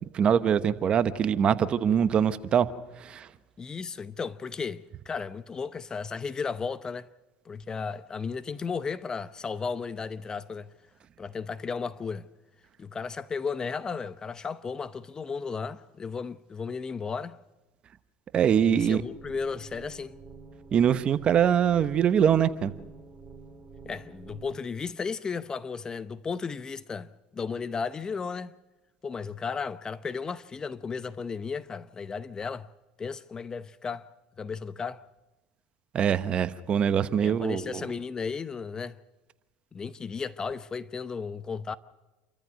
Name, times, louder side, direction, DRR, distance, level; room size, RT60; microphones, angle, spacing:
voice 1, 0.1-2.7 3.0-3.3 18.3-19.0 20.7-22.7 35.9-37.8, right 8 dB, 40° right, 1.1 m, -23 dB
voice 2, 3.6-7.1 7.4-10.7 11.2-12.3 12.8-17.4 18.6-20.2 23.8-28.5 29.0-32.7 33.0-34.1 34.4-35.0 37.2-39.0 39.7-41.8, left 5 dB, 25° left, 0.8 m, -34 dB
sound 1, 18.6-24.6, right 4 dB, 20° right, 2.7 m, -48 dB
28.0 x 14.0 x 6.5 m
supercardioid pair, 100°, 3 cm